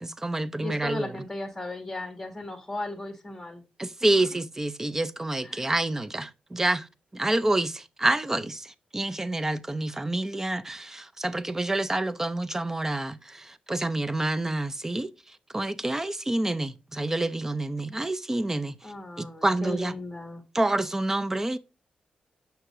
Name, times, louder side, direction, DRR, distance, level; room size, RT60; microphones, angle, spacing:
voice 1, 0.0-1.2 3.8-19.9 20.5-21.6, right 2 dB, 15° right, 0.5 m, -28 dB
voice 2, 0.6-3.6 4.0-4.1 5.4-5.7 18.8-20.4, left 2 dB, 10° left, 1.9 m, -36 dB
6.6 x 6.4 x 2.5 m
cardioid pair, 105°, 3 cm